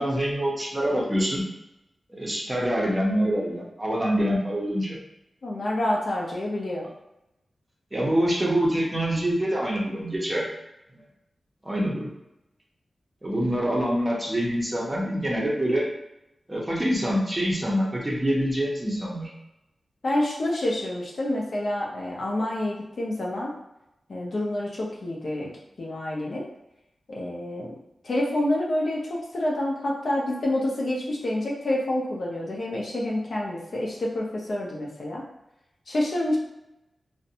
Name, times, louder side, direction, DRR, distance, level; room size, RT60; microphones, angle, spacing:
voice 1, 0.0-1.4 2.1-5.0 7.9-10.5 11.6-12.1 13.2-15.8 16.5-19.3, equal, 20° right, -4 dB, 0.6 m, -25 dB
voice 2, 5.4-6.9 20.0-23.5 24.1-25.5 25.8-26.4 27.1-27.7 28.0-35.2 35.9-36.4, left 1 dB, 55° left, -3 dB, 0.5 m, -28 dB
2.5 x 2.1 x 2.7 m, 0.89 s
wide cardioid pair, 135°, 0 cm